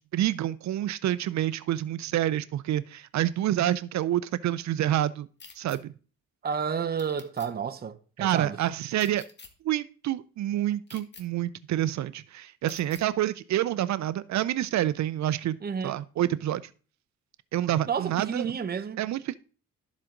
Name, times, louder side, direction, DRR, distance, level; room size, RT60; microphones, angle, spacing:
voice 1, 0.1-5.3 5.6-5.9 8.2-9.2 9.6-15.6 15.8-16.6 17.5-18.5 19.0-19.4, right 12 dB, 65° right, 0.6 m, -28 dB
sound 1, 5.4-5.8 7.0-7.5 9.0-9.5 10.9-11.2 12.7-13.0, left 4 dB, 35° left, 1.8 m, -48 dB
voice 2, 6.4-8.6 15.6-16.0 17.9-19.0, right 6 dB, 30° right, 0.9 m, -31 dB
12.0 x 7.4 x 3.8 m
cardioid pair, 90°, 30 cm